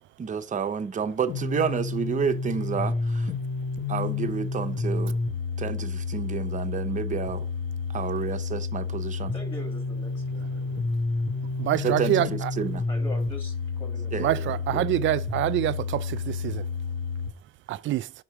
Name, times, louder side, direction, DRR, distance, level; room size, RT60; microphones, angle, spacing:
voice 1, 0.2-3.3 3.9-5.2 5.6-7.5 7.9-9.3 11.8-12.8 14.1-14.4 14.7-14.9, right 7 dB, 40° right, 0.8 m, -30 dB
sound 1, 1.3-17.3, left 4 dB, 60° left, 1.4 m, -30 dB
voice 2, 9.3-10.8 12.9-15.1, left 1 dB, 25° left, 2.3 m, -43 dB
voice 3, 11.6-12.5 14.2-16.7 17.7-18.1, right 15 dB, 75° right, 0.4 m, -26 dB
5.8 x 3.2 x 5.8 m
cardioid pair, 90°, 20 cm